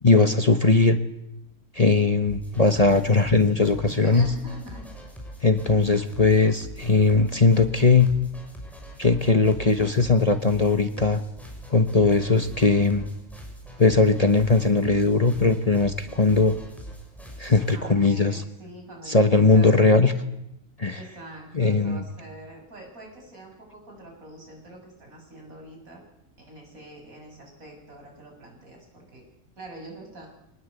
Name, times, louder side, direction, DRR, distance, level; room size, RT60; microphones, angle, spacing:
voice 1, 0.0-1.0 1.7-4.3 5.4-8.1 9.0-11.2 11.7-13.0 13.8-16.5 17.4-18.4 19.1-20.1 20.8-21.0 21.5-22.0, left 3 dB, 30° left, 8 dB, 1.2 m, -19 dB
sound 1, 2.3-17.7, equal, ahead, 6.3 m, -42 dB
voice 2, 4.0-4.9 5.7-5.8 17.7-19.7 20.9-26.0 26.4-29.2 29.6-30.3, right 1 dB, 75° right, 1 dB, 7.6 m, -44 dB
24.5 x 19.5 x 8.2 m, 0.83 s
omnidirectional pair, 1.5 m